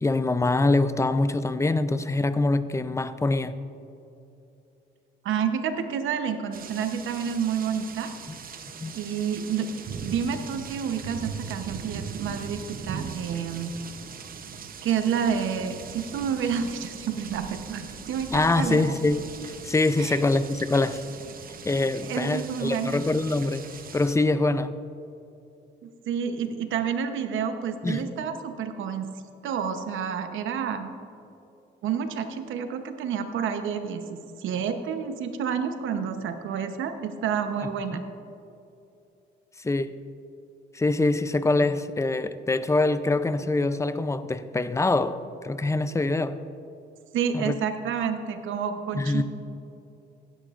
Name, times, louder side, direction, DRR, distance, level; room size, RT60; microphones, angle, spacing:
voice 1, 0.0-3.6 8.3-8.4 8.8-8.9 18.3-21.0 21.6-23.6 23.9-24.7 27.8-28.1 37.9-38.0 39.6-40.0 40.7-45.2 45.4-46.4 47.3-47.6 49.0-49.2, left 2 dB, 15° left, 12 dB, 0.5 m, -24 dB
voice 2, 5.2-8.1 8.9-9.7 10.0-13.7 14.8-18.9 20.0-20.2 22.0-23.1 25.8-29.1 29.4-30.9 31.8-38.0 47.1-49.2, right 7 dB, 80° right, 8 dB, 0.9 m, -29 dB
sound 1, 6.5-24.2, right 6 dB, 45° right, 0.7 m, -40 dB
16.0 x 10.5 x 2.5 m, 2.8 s
cardioid pair, 90°, 20 cm